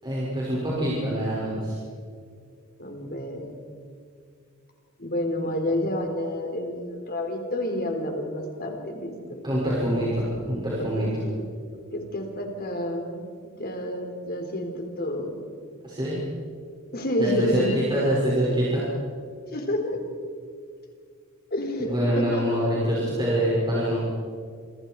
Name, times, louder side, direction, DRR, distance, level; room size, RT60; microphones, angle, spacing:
voice 1, 0.0-1.8 9.4-11.1 15.8-16.2 17.2-18.8 21.9-23.9, equal, 20° right, -7 dB, 6.3 m, -25 dB
voice 2, 2.8-3.5 5.0-9.1 10.8-11.5 11.9-15.4 16.9-17.7 19.5-20.0 21.5-22.7, left 1 dB, 45° left, 3 dB, 3.9 m, -29 dB
29.0 x 26.0 x 4.8 m, 2.2 s
head